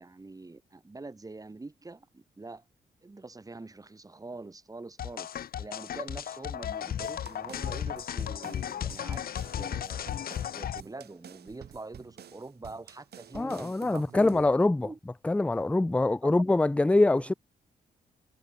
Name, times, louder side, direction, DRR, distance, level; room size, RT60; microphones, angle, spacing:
voice 1, 0.0-2.6 3.0-5.3 5.6-9.2 9.6-10.0 10.5-14.4 14.8-15.0 16.2-16.5 17.0-17.2, right 3 dB, 20° right, 2.9 m, -44 dB
sound 1, 5.0-10.8, left 9 dB, 65° left, 0.7 m, -35 dB
sound 2, 7.0-14.5, right 9 dB, 80° right, 5.5 m, -50 dB
voice 2, 13.3-14.9 15.2-17.3, left 2 dB, 10° left, 0.4 m, -24 dB
cardioid pair, 110°, 17 cm